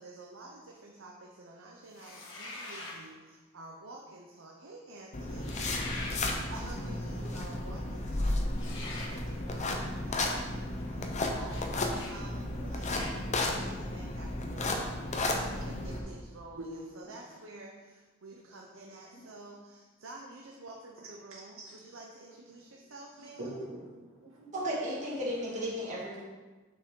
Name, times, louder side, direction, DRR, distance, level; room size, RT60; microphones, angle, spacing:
voice 1, 0.0-15.0 15.2-23.5, right 2 dB, 70° right, -1 dB, 0.8 m, -50 dB
sound 1, 1.9-3.0 5.3-6.2 8.5-9.1 11.5-11.6 11.9-12.1 12.8-13.1, left 2 dB, 65° left, 1.4 m, -42 dB
sound 2, 5.1-16.0, left 2 dB, 35° left, 0.7 m, -33 dB
voice 2, 15.8-16.1 16.6-16.7 19.2-19.3 21.3-21.8 23.4-24.6, right 1 dB, 85° right, -4 dB, 2.1 m, -44 dB
voice 3, 24.5-26.2, equal, 35° right, -6 dB, 1.9 m, -34 dB
6.7 x 6.1 x 3.8 m, 1.3 s
head